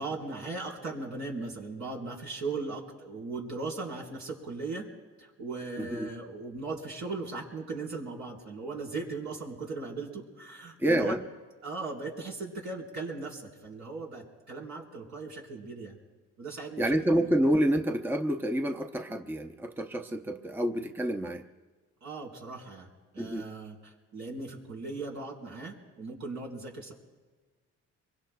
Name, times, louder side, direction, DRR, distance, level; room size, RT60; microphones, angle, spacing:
voice 1, 0.0-4.9 5.2-11.2 11.6-16.0 16.4-17.3 22.0-22.9 23.1-26.9, right 3 dB, 70° right, -2 dB, 4.5 m, -38 dB
voice 2, 5.8-6.1 10.8-11.2 16.8-21.5 23.2-23.5, right 1 dB, 5° right, 5 dB, 0.8 m, -28 dB
25.0 x 23.5 x 2.3 m, 1.4 s
cardioid pair, 90°, 30 cm